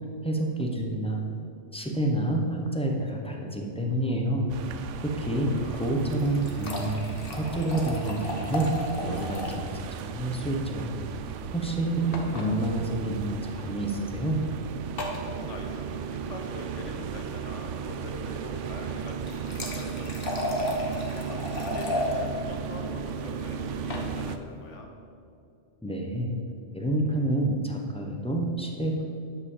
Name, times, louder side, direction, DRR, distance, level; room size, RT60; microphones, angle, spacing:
voice 1, 0.2-1.2 1.7-4.5 5.0-8.7 9.0-9.8 10.1-10.9 11.5-14.4 25.8-26.3 26.7-29.0, right 1 dB, 5° left, 1 dB, 1.1 m, -28 dB
sound 1, 4.5-24.4, right 7 dB, 80° right, 0.9 m, -36 dB
voice 2, 5.0-5.9 15.2-24.9, left 2 dB, 75° left, 3 dB, 1.5 m, -43 dB
sound 2, 6.0-9.7 10.0-10.1 10.3-10.4 12.1-12.5 13.5-13.6 15.0-15.3 19.0-22.1 23.6-24.1, left 1 dB, 50° left, 1.5 m, -34 dB
10.5 x 5.5 x 7.4 m, 2.5 s
omnidirectional pair, 1.2 m